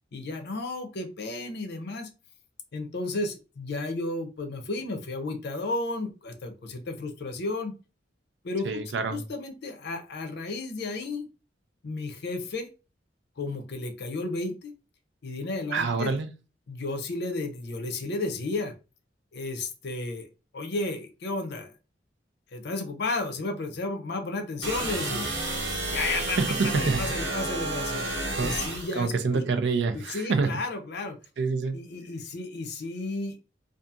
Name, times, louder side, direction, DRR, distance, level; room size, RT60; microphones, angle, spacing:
voice 1, 0.1-2.1 2.7-7.7 8.4-8.8 9.1-11.3 11.8-12.7 13.4-14.7 15.2-16.2 16.7-18.7 19.3-20.3 20.5-21.7 22.5-25.3 25.9-26.4 26.6-28.1 28.4-29.4 29.9-31.2 31.7-33.5, left 2 dB, 60° left, 0.6 m, -33 dB
voice 2, 8.6-9.2 15.7-16.3 26.4-27.3 28.3-28.6 29.0-30.5 31.4-31.8, right 4 dB, 65° right, 0.4 m, -27 dB
sound 1, 24.6-29.0, right 2 dB, 90° right, 1.3 m, -31 dB
2.7 x 2.4 x 2.3 m
head